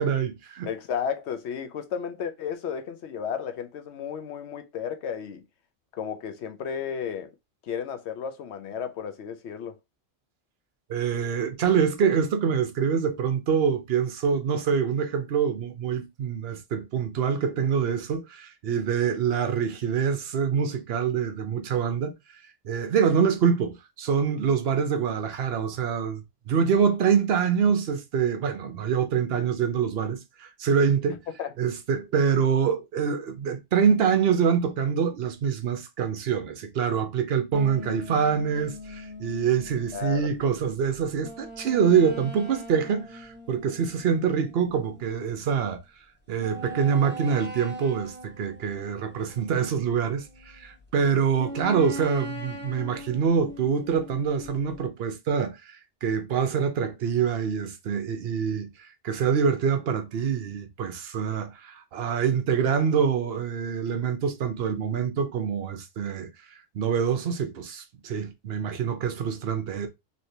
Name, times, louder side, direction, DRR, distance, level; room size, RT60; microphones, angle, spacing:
voice 1, 0.0-0.7 10.9-22.1 22.6-31.2 31.6-45.8 46.3-58.7 59.0-66.3 66.7-69.9, right 7 dB, 65° right, 0.9 m, -25 dB
voice 2, 0.6-5.4 5.9-7.3 7.6-9.7 31.4-31.5 39.9-40.3, left 7 dB, 75° left, 0.8 m, -33 dB
sound 1, 37.5-45.2 45.7-45.8 46.4-50.8 51.4-54.9, equal, 10° right, 0.7 m, -41 dB
3.2 x 2.8 x 2.6 m
omnidirectional pair, 1.2 m